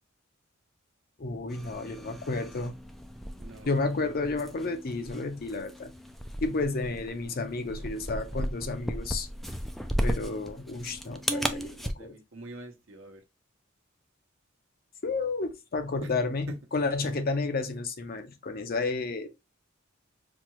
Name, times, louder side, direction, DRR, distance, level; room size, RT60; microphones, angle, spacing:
voice 1, 1.2-2.7 3.7-5.9 6.4-9.3 10.0-12.2 15.0-19.3, left 3 dB, 50° left, 0.6 m, -31 dB
sound 1, 1.5-11.9, equal, ahead, 0.3 m, -36 dB
voice 2, 3.4-3.7 7.3-8.4 11.7-13.2 16.0-16.1 16.5-16.6 17.0-17.1, right 2 dB, 70° right, 0.9 m, -47 dB
4.3 x 2.3 x 3.0 m
head